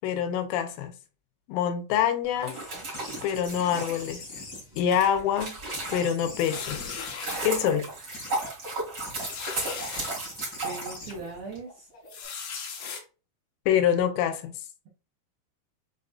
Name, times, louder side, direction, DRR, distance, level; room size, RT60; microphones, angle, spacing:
voice 1, 0.0-1.0 1.5-2.6 3.2-4.4 4.8-5.6 5.9-6.8 7.4-7.9 13.7-14.6, left 9 dB, 85° left, 3.2 m, -26 dB
sound 1, 2.3-6.4 6.9-11.6, right 2 dB, 60° right, 1.1 m, -35 dB
sound 2, 2.9-5.3 5.7-7.6 8.1-8.5 8.9-9.4 9.7-12.2, left 2 dB, 40° left, 1.5 m, -43 dB
sound 3, 6.4-7.5 8.1-8.2 8.5-8.6 9.2-10.1 10.7-10.8 12.1-13.0, left 6 dB, 70° left, 2.4 m, -37 dB
voice 2, 10.6-11.9, right 3 dB, 90° right, 2.1 m, -39 dB
7.2 x 2.5 x 2.3 m
omnidirectional pair, 5.7 m